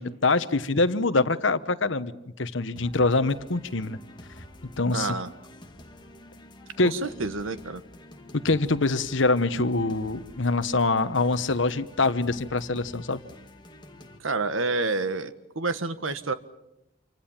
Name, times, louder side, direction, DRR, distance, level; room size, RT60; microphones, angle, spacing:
voice 1, 0.0-2.1 2.4-4.0 4.8-5.1 6.8-6.9 8.4-13.2, left 3 dB, 70° left, 13 dB, 1.2 m, -24 dB
sound 1, 2.8-14.2, left 1 dB, 25° left, 2.2 m, -48 dB
voice 2, 4.9-5.3 6.8-7.8 14.2-16.3, right 3 dB, 90° right, 12 dB, 1.5 m, -29 dB
28.0 x 25.0 x 7.4 m, 0.85 s
head